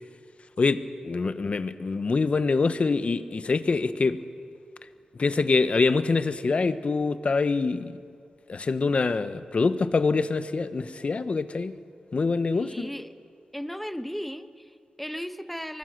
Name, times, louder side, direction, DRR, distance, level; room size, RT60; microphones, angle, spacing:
voice 1, 0.6-4.2 5.1-7.9 8.5-11.8 12.1-12.9, left 4 dB, 55° left, 12 dB, 1.1 m, -25 dB
voice 2, 12.5-13.1 13.5-15.8, equal, 5° left, 10 dB, 1.3 m, -36 dB
24.0 x 20.5 x 6.7 m, 2.2 s
cardioid pair, 50°, 3 cm